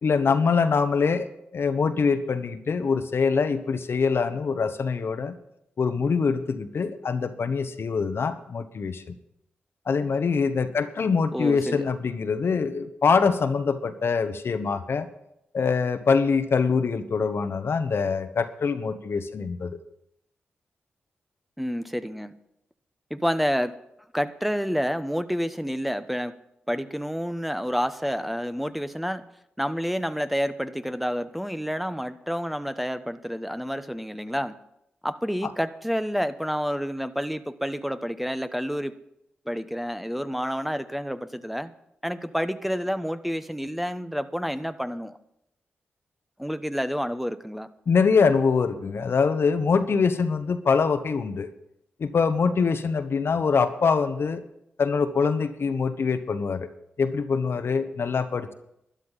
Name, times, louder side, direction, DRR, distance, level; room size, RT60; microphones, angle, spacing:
voice 1, 0.0-5.3 5.8-9.1 9.9-15.1 15.5-19.8 47.9-51.5 52.0-54.4 54.8-56.7 57.0-58.5, left 5 dB, 65° left, 10 dB, 1.1 m, -24 dB
voice 2, 11.3-11.9 21.6-22.3 23.1-23.7 24.1-26.3 26.7-29.2 29.6-34.5 35.0-39.1 39.5-41.7 42.0-45.2 46.4-47.7, equal, ahead, 11 dB, 1.0 m, -29 dB
12.5 x 10.5 x 5.7 m, 0.79 s
supercardioid pair, 40°, 4 cm